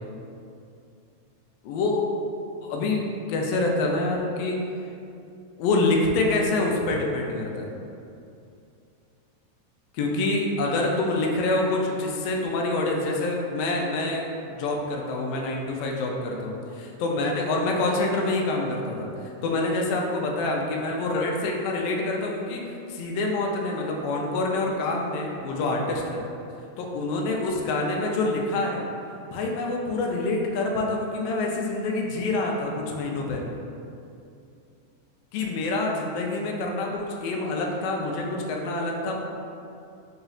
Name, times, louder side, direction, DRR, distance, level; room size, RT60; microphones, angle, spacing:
voice 1, 1.6-2.0 2.6-4.6 5.6-7.7 9.9-26.2 26.8-28.9 29.3-33.5 35.3-39.2, left 2 dB, 85° left, 0 dB, 1.3 m, -26 dB
4.1 x 3.9 x 2.3 m, 2.6 s
omnidirectional pair, 3.3 m